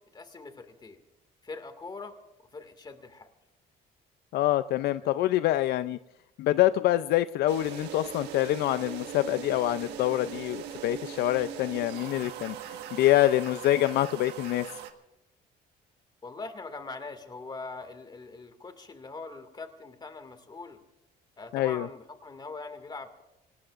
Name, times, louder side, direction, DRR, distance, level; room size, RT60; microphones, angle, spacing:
voice 1, 0.1-1.0 1.4-2.2 2.5-3.3 16.2-20.8 21.4-23.2, left 3 dB, 25° left, 8 dB, 2.1 m, -42 dB
voice 2, 4.3-6.0 6.4-12.6 12.9-14.7 21.5-21.9, left 14 dB, 75° left, 13 dB, 0.5 m, -25 dB
sound 1, 7.5-14.9, right 9 dB, 85° right, 1.5 m, -40 dB
25.5 x 19.0 x 2.5 m, 0.96 s
cardioid pair, 110°, 17 cm